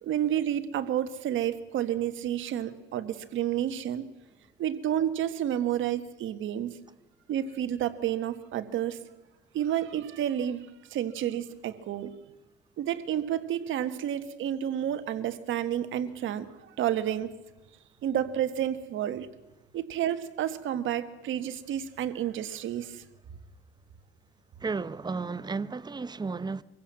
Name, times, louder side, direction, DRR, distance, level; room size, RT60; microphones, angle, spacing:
voice 1, 0.0-4.1 4.6-6.8 7.3-9.0 9.5-12.1 12.8-17.3 18.0-19.3 19.7-23.0, right 10 dB, 80° right, 1.5 m, -30 dB
voice 2, 24.6-26.6, right 4 dB, 20° right, 0.7 m, -33 dB
24.0 x 15.5 x 7.6 m
cardioid pair, 90°, 20 cm